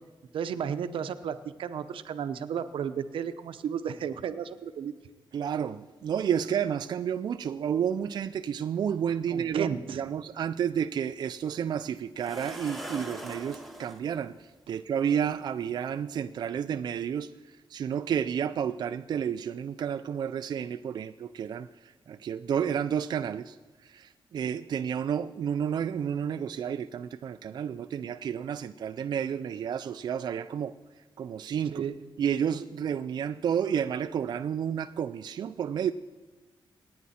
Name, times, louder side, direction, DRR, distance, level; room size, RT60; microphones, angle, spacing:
voice 1, 0.3-4.9 9.3-10.0 31.7-31.9, right 8 dB, 85° right, 11 dB, 0.8 m, -33 dB
voice 2, 5.3-23.6 23.8-30.7 31.2-31.8 32.2-35.9, right 8 dB, 55° right, 9 dB, 0.3 m, -31 dB
sound 1, 11.1-11.2 12.2-14.0 15.2-15.3 15.8-16.0, equal, ahead, 1.2 m, -41 dB
26.5 x 9.5 x 4.2 m, 1.3 s
wide cardioid pair, 155°, 9 cm